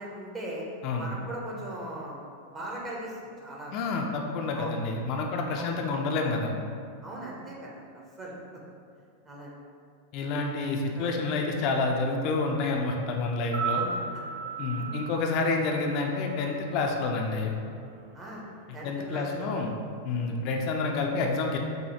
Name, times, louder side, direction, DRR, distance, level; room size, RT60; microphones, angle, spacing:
voice 1, 0.0-0.6 1.0-2.2 2.5-3.8 4.5-4.8 5.6-5.8 7.0-7.8 8.2-8.4 9.3-9.5 10.3-10.4 10.9-11.1 13.6-14.0 14.8-14.9 18.1-18.5 18.7-19.7 20.2-20.5, right 1 dB, 25° right, -4 dB, 0.6 m, -39 dB
voice 2, 3.7-6.5 10.1-13.8 14.6-17.5 18.8-19.7 20.0-21.6, left 3 dB, 40° left, 1 dB, 0.4 m, -28 dB
sound 1, 13.4-17.6 17.8-17.9, right 6 dB, 55° right, 0.8 m, -36 dB
4.9 x 2.2 x 2.7 m, 2.2 s
figure-of-eight pair, 90°, 0 cm